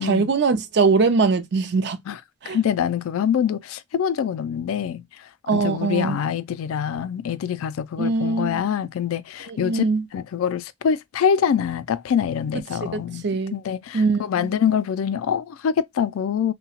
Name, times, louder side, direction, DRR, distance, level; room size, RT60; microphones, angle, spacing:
voice 1, 0.0-2.0 2.4-2.6 5.5-6.2 8.0-8.6 9.5-10.0 12.8-13.6 13.9-14.5, right 4 dB, 55° right, 0.5 m, -22 dB
voice 2, 2.5-9.9 10.1-13.3 13.5-16.5, left 8 dB, 90° left, 0.3 m, -25 dB
2.8 x 2.1 x 2.8 m
head